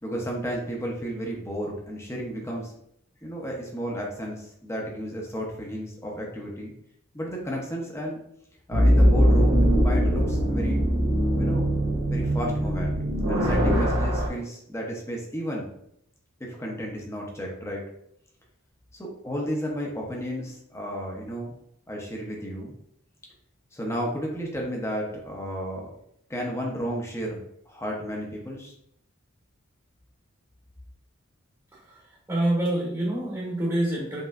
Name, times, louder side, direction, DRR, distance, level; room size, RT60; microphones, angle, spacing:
voice 1, 0.0-2.7 3.2-6.7 7.1-8.2 8.7-10.8 11.4-11.7 12.1-13.0 13.3-15.7 16.4-17.8 18.9-21.5 21.9-22.7 23.7-25.9 26.3-27.4 27.7-28.7, equal, 15° left, -1 dB, 0.8 m, -33 dB
sound 1, 8.7-14.3, equal, 85° right, 1.3 m, -21 dB
voice 2, 32.3-34.3, right 1 dB, 15° right, -6 dB, 1.1 m, -26 dB
5.4 x 3.1 x 2.5 m, 0.73 s
head